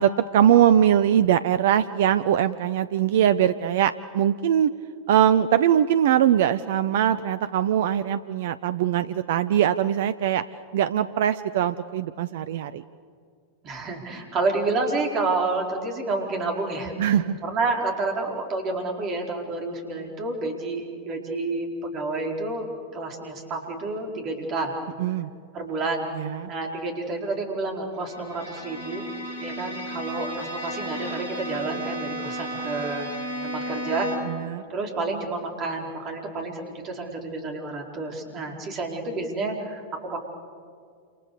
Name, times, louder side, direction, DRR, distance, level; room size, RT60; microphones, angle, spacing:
voice 1, 0.0-4.7 5.1-10.4 10.7-12.8 17.0-17.4 25.0-25.3 26.1-26.5 34.3-34.6, right 10 dB, 55° right, 14 dB, 0.6 m, -21 dB
voice 2, 13.6-17.1 17.4-24.7 25.5-26.1 26.5-29.1 29.4-33.1 33.4-34.4 34.7-40.2, right 3 dB, 35° right, 2 dB, 4.7 m, -29 dB
Bowed string instrument, 28.0-34.5, equal, 75° left, 6.1 m, -34 dB
28.5 x 28.0 x 6.9 m, 2.2 s
figure-of-eight pair, 90°, 0 cm